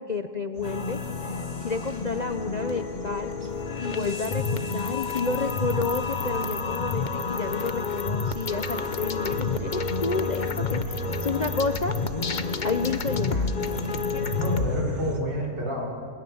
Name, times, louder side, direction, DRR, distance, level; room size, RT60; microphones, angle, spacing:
voice 1, 0.0-3.3 3.8-12.0 12.6-13.5, left 4 dB, 60° left, 8 dB, 0.4 m, -30 dB
sound 1, 0.6-14.7, left 5 dB, 35° left, 0.8 m, -30 dB
sound 2, 0.6-15.2, right 1 dB, 40° right, 2.1 m, -37 dB
voice 2, 14.3-15.9, equal, 80° right, -2 dB, 5.5 m, -29 dB
30.0 x 20.5 x 7.1 m, 2.3 s
omnidirectional pair, 1.8 m